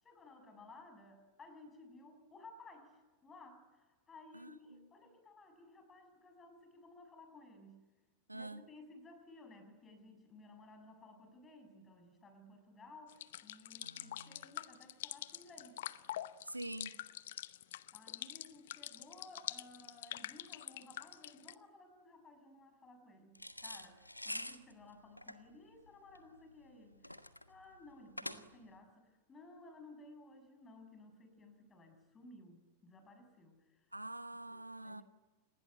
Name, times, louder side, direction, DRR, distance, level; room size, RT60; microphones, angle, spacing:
voice 1, 0.0-7.8 8.3-15.8 17.9-33.9 34.3-35.0, left 2 dB, 20° left, 7.5 m, -57 dB
voice 2, 8.3-8.6 13.8-14.4 16.5-16.9 33.9-35.0, right 2 dB, 85° right, 1.1 m, -46 dB
sound 1, 13.1-21.5, left 13 dB, 55° left, 0.9 m, -45 dB
sound 2, 23.4-28.8, left 1 dB, 85° left, 1.3 m, -47 dB
28.0 x 20.5 x 9.4 m
figure-of-eight pair, 90°, 0 cm